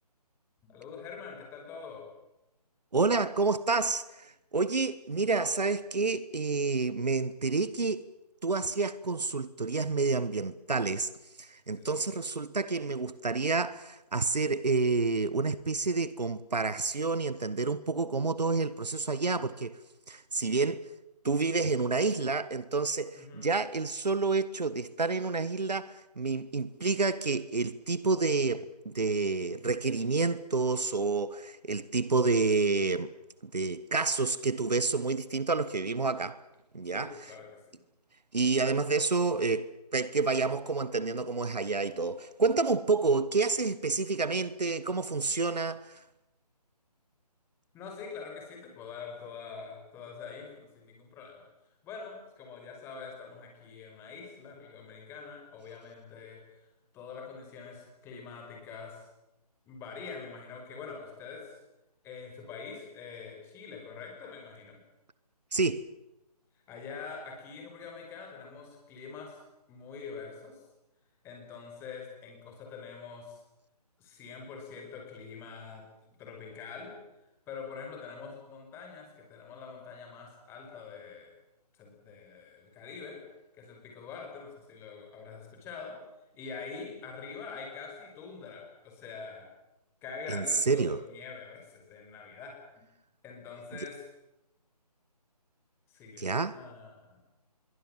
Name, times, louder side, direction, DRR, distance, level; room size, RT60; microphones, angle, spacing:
voice 1, 0.6-2.0 11.8-12.0 23.2-23.5 36.8-37.5 47.7-51.4 51.8-56.4 56.9-59.1 59.7-61.5 62.0-64.8 66.7-69.4 69.7-70.6 71.2-73.4 74.0-76.9 77.5-81.3 81.7-83.2 83.6-86.0 86.4-89.5 90.0-92.6 93.2-94.1 95.9-97.2, left 5 dB, 10° left, 5.5 m, -44 dB
voice 2, 2.9-8.0 8.4-11.1 11.4-19.8 20.1-20.9 21.2-33.1 33.5-36.4 36.7-37.3 38.3-46.0 65.5-65.8 90.3-91.0 96.2-96.6, right 4 dB, 85° right, 1.3 m, -29 dB
26.5 x 23.0 x 7.5 m
figure-of-eight pair, 155°, 21 cm